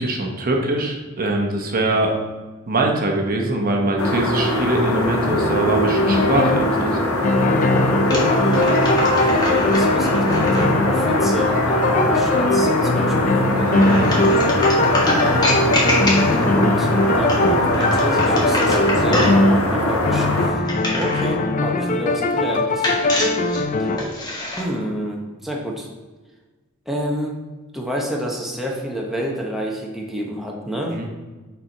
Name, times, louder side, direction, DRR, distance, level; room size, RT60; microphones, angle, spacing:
voice 1, 0.0-2.2 2.7-7.0 13.3-14.4 30.9-31.1, right 2 dB, 45° right, 1 dB, 1.0 m, -22 dB
sound 1, 4.0-20.5, left 1 dB, 85° left, 1.0 m, -22 dB
sound 2, 6.1-6.7 7.2-19.7 20.1-24.0, left 2 dB, 40° left, 0.4 m, -20 dB
sound 3, 8.0-10.7 13.8-16.6 17.1-19.4 20.7-21.3 22.8-24.6, left 1 dB, 20° left, 1.4 m, -25 dB
voice 2, 8.2-13.8 15.1-20.6 20.9-22.9 23.8-23.9 24.6-25.9 26.9-27.4 27.7-31.0, right 1 dB, ahead, -2 dB, 0.8 m, -28 dB
6.7 x 4.4 x 4.5 m, 1.2 s
head